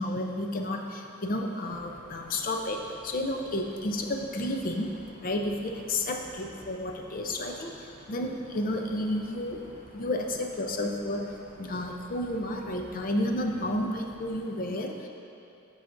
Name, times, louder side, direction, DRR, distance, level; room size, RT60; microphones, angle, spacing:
voice 1, 0.0-4.9 5.2-7.7 8.1-9.6 9.9-11.3 11.6-15.1, left 1 dB, 40° left, 3 dB, 0.5 m, -31 dB
sound 1, 1.6-14.4, right 1 dB, 40° right, 0.6 m, -54 dB
9.4 x 5.6 x 2.6 m, 3.0 s
head